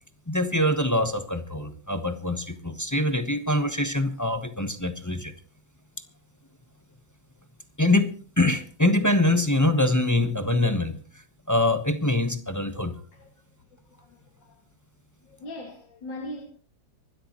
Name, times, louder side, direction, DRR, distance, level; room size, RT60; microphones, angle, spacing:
voice 1, 0.3-5.3 7.8-11.0 11.5-13.0, left 1 dB, 15° left, 0.7 m, -24 dB
voice 2, 13.7-14.6 15.2-16.4, left 1 dB, 80° left, 2.8 m, -41 dB
24.5 x 12.5 x 3.0 m
omnidirectional pair, 2.0 m